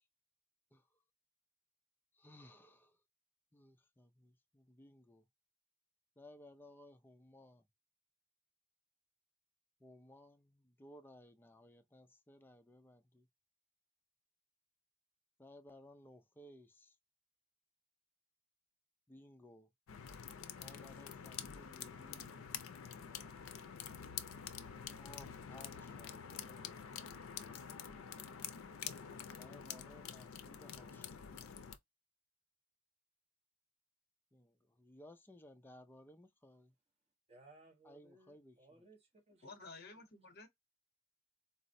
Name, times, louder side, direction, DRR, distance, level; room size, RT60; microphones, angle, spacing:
voice 1, 2.1-3.0 3.5-5.2 6.2-7.6 9.8-13.3 15.4-17.0 19.1-19.7 20.6-22.4 25.0-26.9 29.3-31.5 34.3-36.7 37.8-38.6, left 1 dB, 10° left, 0.3 m, -59 dB
sound 1, 19.9-31.8, left 8 dB, 75° left, 0.4 m, -47 dB
voice 2, 37.3-40.0, right 2 dB, 30° right, 1.0 m, -63 dB
voice 3, 39.4-40.5, left 3 dB, 50° left, 0.8 m, -53 dB
4.1 x 2.1 x 2.5 m
head